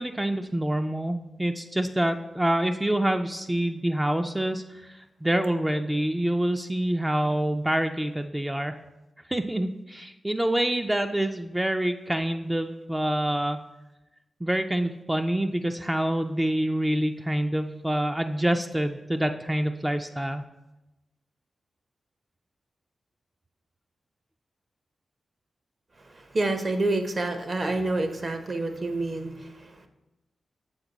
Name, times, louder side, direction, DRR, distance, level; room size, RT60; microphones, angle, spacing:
voice 1, 0.0-8.8 9.3-13.6 14.4-20.4, right 1 dB, 15° right, 6 dB, 0.3 m, -26 dB
voice 2, 26.1-29.9, right 2 dB, 45° right, 7 dB, 0.7 m, -28 dB
7.2 x 4.4 x 3.9 m, 0.99 s
cardioid pair, 70°, 0 cm